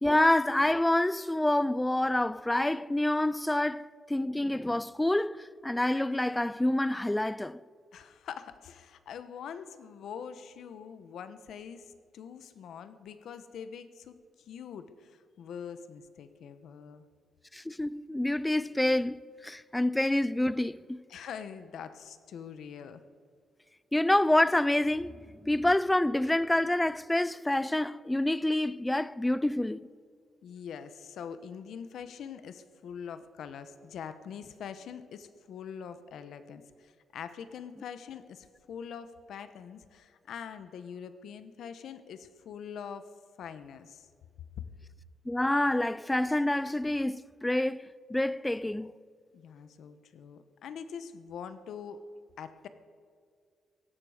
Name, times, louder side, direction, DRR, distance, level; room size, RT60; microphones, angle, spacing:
voice 1, 0.0-7.6 17.5-21.0 23.9-25.1 25.4-29.9 45.3-48.9, left 1 dB, 5° left, 0.3 m, -27 dB
voice 2, 7.9-17.0 21.1-23.0 30.4-43.1 43.4-44.1 44.6-44.7 49.3-52.0 52.4-52.7, left 7 dB, 70° left, 1.0 m, -44 dB
18.0 x 15.0 x 5.0 m
cardioid pair, 160°, 0 cm